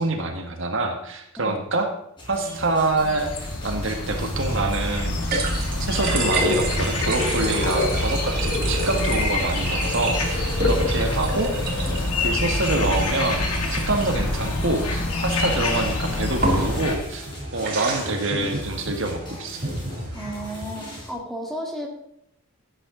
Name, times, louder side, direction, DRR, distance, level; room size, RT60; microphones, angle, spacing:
voice 1, 0.0-1.9 2.3-11.5 12.2-19.6, right 2 dB, 60° right, 4 dB, 1.6 m, -26 dB
sound 1, 2.2-21.1, equal, 20° left, 4.0 m, -39 dB
sound 2, 2.7-17.0, left 2 dB, 90° left, 2.1 m, -26 dB
sound 3, 3.7-20.7, right 1 dB, 40° right, 3.8 m, -30 dB
voice 2, 20.1-21.9, equal, ahead, -1 dB, 2.1 m, -33 dB
15.5 x 9.7 x 3.8 m, 0.75 s
head